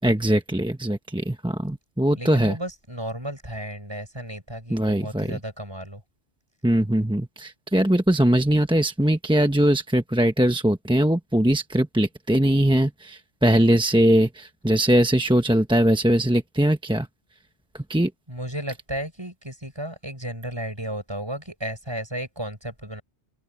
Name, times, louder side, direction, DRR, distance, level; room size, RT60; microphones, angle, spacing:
voice 1, 0.0-2.6 4.7-5.4 6.6-17.1 17.9-18.1, right 1 dB, 5° right, 0.8 m, -21 dB
voice 2, 2.1-6.0 18.3-23.0, right 1 dB, 20° right, 6.8 m, -33 dB
omnidirectional pair, 1.2 m